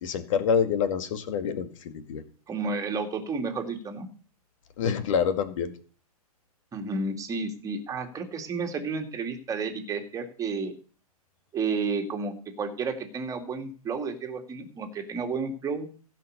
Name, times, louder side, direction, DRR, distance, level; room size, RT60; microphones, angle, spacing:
voice 1, 0.0-2.2 4.8-5.7, left 7 dB, 55° left, 9 dB, 2.1 m, -27 dB
voice 2, 2.5-4.1 6.7-10.7 11.5-15.9, right 4 dB, 15° right, 3 dB, 2.5 m, -31 dB
15.0 x 6.0 x 6.8 m, 0.41 s
hypercardioid pair, 125°, 20 cm